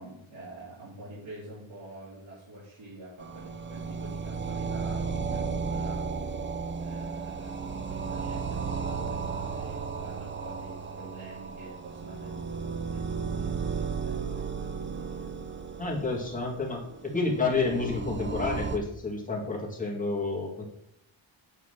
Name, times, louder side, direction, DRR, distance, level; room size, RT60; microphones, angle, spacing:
voice 1, 0.0-6.3 6.8-15.4, right 2 dB, 75° right, -9 dB, 3.5 m, -47 dB
sound 1, 3.2-18.8, right 5 dB, 25° right, 0.5 m, -34 dB
voice 2, 15.8-16.8 17.1-20.6, left 3 dB, 15° left, -3 dB, 2.4 m, -29 dB
8.3 x 4.6 x 7.4 m, 0.75 s
wide cardioid pair, 170°, 48 cm